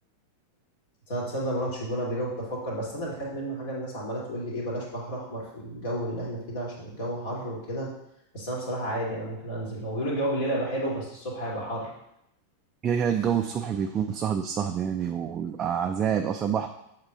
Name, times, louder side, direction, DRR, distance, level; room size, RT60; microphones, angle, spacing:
voice 1, 1.1-7.9 8.3-11.9, right 1 dB, 55° left, -4 dB, 2.6 m, -31 dB
voice 2, 12.8-16.7, right 8 dB, 25° right, 5 dB, 0.4 m, -27 dB
7.2 x 3.8 x 5.0 m, 0.81 s
figure-of-eight pair, 90°, 0 cm